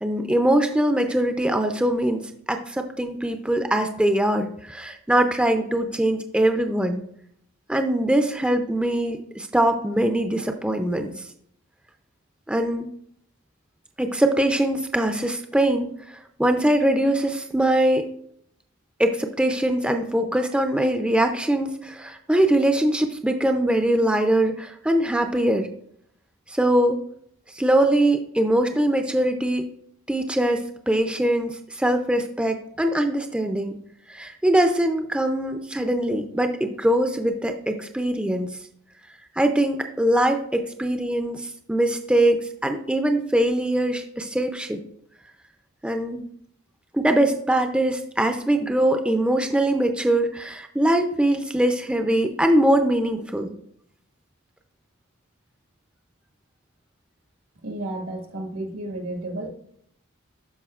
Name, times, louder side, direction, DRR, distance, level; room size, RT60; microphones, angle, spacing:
voice 1, 0.0-7.0 7.7-11.3 12.5-12.9 14.0-18.1 19.0-25.7 26.5-27.0 27.5-29.7 30.1-33.8 34.1-38.6 39.4-44.8 45.8-46.2 46.9-53.5, right 1 dB, 5° right, 5 dB, 0.4 m, -22 dB
voice 2, 57.6-59.5, right 1 dB, 85° right, 3 dB, 1.6 m, -32 dB
12.5 x 4.9 x 2.4 m, 0.67 s
head